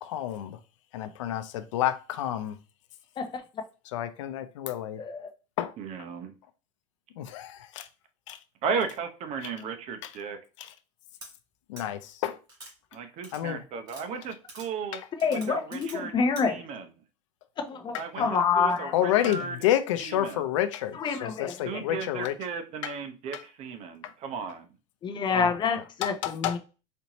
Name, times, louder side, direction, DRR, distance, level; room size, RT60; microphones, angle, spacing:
voice 1, 0.0-0.6 0.9-2.6 3.9-5.0 5.6-5.7 7.2-7.9 8.3-8.4 11.7-12.4 13.3-13.6 17.9-18.3 18.9-22.3 22.8-22.9 24.0-24.1 25.3-25.5 26.0-26.5, left 12 dB, 90° left, 0.5 m, -29 dB
voice 2, 5.0-5.3 15.2-16.6 17.6-19.0 20.9-21.8 25.0-26.6, left 5 dB, 30° left, 0.7 m, -27 dB
voice 3, 5.8-6.4 8.6-10.4 12.9-15.0 15.3-16.1 16.4-16.8 18.0-18.2 18.5-19.6 20.0-20.5 21.6-24.7, right 5 dB, 45° right, 0.7 m, -35 dB
sound 1, 11.2-11.3 11.8-11.9 12.5-12.7 13.2-13.4 13.9-14.0 14.5-14.7 15.2-16.0 16.4-16.5, right 2 dB, 25° right, 2.2 m, -45 dB
4.3 x 2.7 x 2.9 m
supercardioid pair, 120°, 16 cm